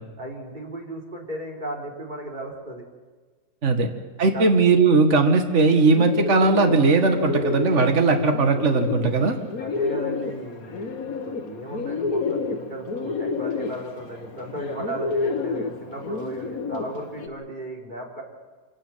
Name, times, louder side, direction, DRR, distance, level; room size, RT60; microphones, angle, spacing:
voice 1, 0.2-2.8 3.7-3.9 4.2-4.5 9.6-18.2, right 1 dB, 25° right, -1 dB, 4.1 m, -35 dB
voice 2, 4.2-9.4, right 3 dB, 40° right, 5 dB, 2.2 m, -18 dB
Bird, 5.6-17.3, left 4 dB, 50° left, 1.8 m, -29 dB
26.5 x 13.0 x 9.3 m, 1.4 s
omnidirectional pair, 2.1 m